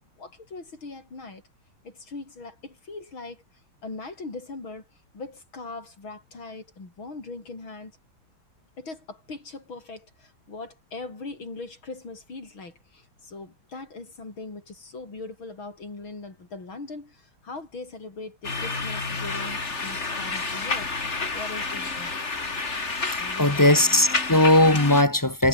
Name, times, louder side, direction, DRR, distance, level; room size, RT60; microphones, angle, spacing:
voice 1, 0.2-1.4 1.8-7.9 8.8-20.9 21.3-22.2 23.2-24.0, left 3 dB, 85° left, 6.4 m, -40 dB
sound 1, 18.4-25.0, left 3 dB, 35° left, 2.9 m, -30 dB
voice 2, 23.0-25.5, left 1 dB, 15° left, 0.9 m, -19 dB
omnidirectional pair, 2.2 m